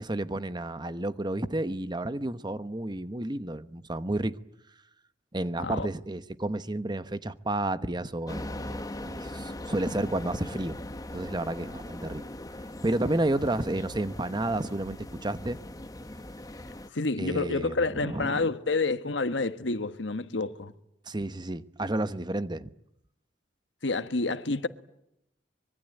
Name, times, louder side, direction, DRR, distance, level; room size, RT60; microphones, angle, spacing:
voice 1, 0.0-4.4 5.3-8.8 9.1-10.8 11.1-12.2 12.8-15.6 17.2-18.4 21.1-22.7, right 1 dB, 25° right, 1.0 m, -31 dB
sound 1, 8.3-16.9, left 1 dB, 20° left, 1.3 m, -40 dB
voice 2, 16.9-20.7 23.8-24.7, left 3 dB, 85° left, 1.4 m, -29 dB
25.0 x 23.0 x 9.0 m
head